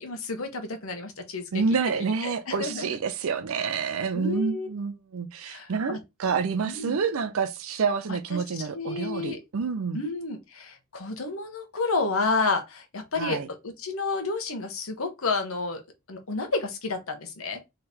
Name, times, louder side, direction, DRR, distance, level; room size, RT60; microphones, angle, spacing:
voice 1, 0.0-1.6 2.2-3.0 4.1-4.7 5.5-6.0 6.6-7.0 8.1-9.4 9.9-15.8 16.1-17.6, left 3 dB, 80° left, 1.2 m, -30 dB
voice 2, 1.5-10.0 13.2-13.5, right 5 dB, 75° right, 0.5 m, -28 dB
3.8 x 3.2 x 4.2 m
head